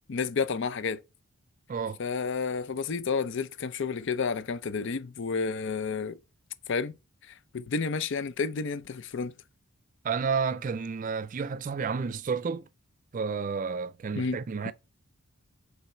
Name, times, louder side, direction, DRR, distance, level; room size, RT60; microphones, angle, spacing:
voice 1, 0.1-1.0 2.0-6.2 6.7-6.9 7.3-9.3 14.2-14.4 14.6-14.7, left 5 dB, 55° left, 0.5 m, -30 dB
voice 2, 1.7-2.0 10.0-12.6 13.1-14.7, right 5 dB, 35° right, 0.3 m, -31 dB
5.5 x 3.9 x 4.3 m
head